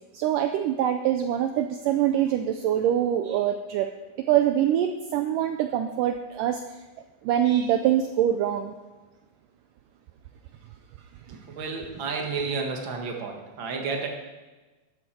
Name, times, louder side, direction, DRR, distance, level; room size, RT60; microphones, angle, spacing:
voice 1, 0.1-3.9 4.3-6.6 7.2-8.7, right 10 dB, 90° right, 7 dB, 1.9 m, -24 dB
voice 2, 11.3-14.1, right 4 dB, 55° right, 2 dB, 1.3 m, -31 dB
12.5 x 12.5 x 4.4 m, 1.2 s
omnidirectional pair, 4.4 m